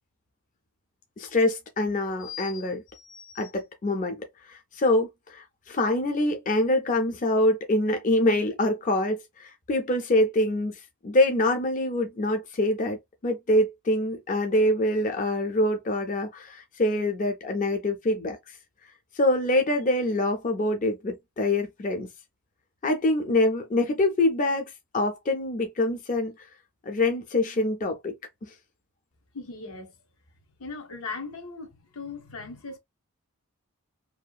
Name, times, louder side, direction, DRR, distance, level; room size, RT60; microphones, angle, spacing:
voice 1, 1.2-13.0 13.2-18.4 19.1-22.1 22.8-26.3 26.9-28.1 28.5-28.6, left 1 dB, 35° left, 0.4 m, -25 dB
voice 2, 29.3-29.9 30.6-32.8, left 4 dB, 80° left, 0.8 m, -38 dB
2.7 x 2.4 x 2.2 m
head